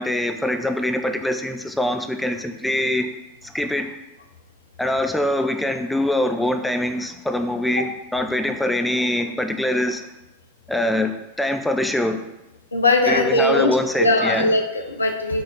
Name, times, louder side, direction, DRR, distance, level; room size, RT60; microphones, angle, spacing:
voice 1, 0.0-3.1 3.5-3.9 4.8-7.9 8.1-10.0 10.7-12.2 13.1-14.5, left 1 dB, 5° left, 6 dB, 0.6 m, -23 dB
voice 2, 12.7-15.4, left 2 dB, 75° left, 4 dB, 0.8 m, -20 dB
6.5 x 4.0 x 5.8 m, 0.93 s
figure-of-eight pair, 90°, 0 cm